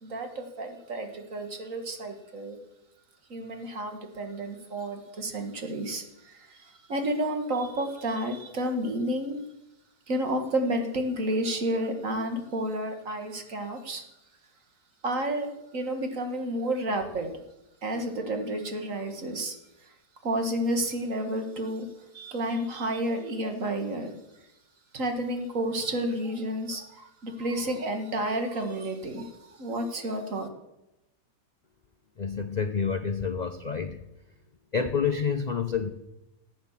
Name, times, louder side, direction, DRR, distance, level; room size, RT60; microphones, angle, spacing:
voice 1, 0.0-2.6 3.3-9.4 10.1-14.0 15.0-17.3 17.8-19.6 19.8-19.9 20.2-21.9 22.1-24.1 24.9-30.5, right 1 dB, 50° right, 5 dB, 2.0 m, -31 dB
voice 2, 32.2-34.0 34.7-35.9, left 6 dB, 60° left, 7 dB, 0.4 m, -28 dB
15.0 x 8.7 x 7.3 m, 0.92 s
omnidirectional pair, 1.8 m